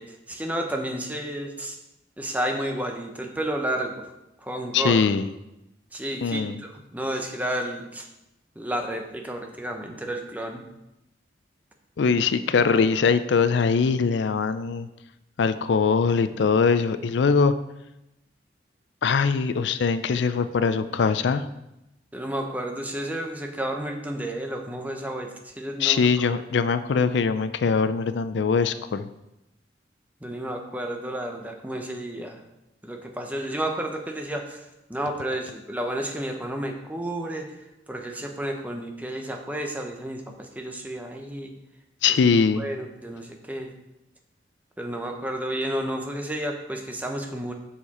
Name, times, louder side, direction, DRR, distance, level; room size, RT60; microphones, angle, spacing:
voice 1, 0.0-1.8 2.2-4.1 4.4-5.0 5.9-8.1 8.6-10.7 22.1-26.3 30.2-32.4 32.8-41.5 42.6-43.7 44.8-47.5, right 1 dB, 10° right, 3 dB, 0.8 m, -31 dB
voice 2, 4.7-5.2 6.2-6.6 12.0-14.9 15.4-17.6 19.0-21.4 25.8-29.1 42.0-42.6, left 5 dB, 75° left, 12 dB, 0.4 m, -22 dB
7.2 x 6.6 x 4.2 m, 0.90 s
head